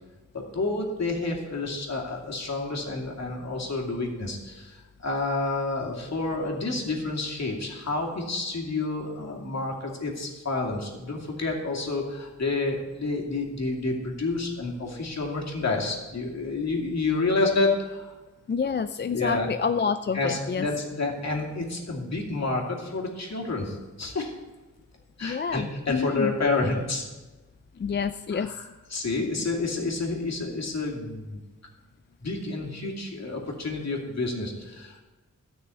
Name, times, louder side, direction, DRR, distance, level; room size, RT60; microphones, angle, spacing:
voice 1, 0.3-18.1 19.1-19.5 20.1-24.3 25.2-27.0 28.3-31.4 32.2-35.0, left 3 dB, 55° left, 0 dB, 2.5 m, -29 dB
voice 2, 18.5-20.7 25.2-26.3 27.8-28.6 29.4-29.5, left 6 dB, 35° left, 10 dB, 0.4 m, -28 dB
13.0 x 6.2 x 8.2 m, 1.2 s
wide cardioid pair, 90°, 31 cm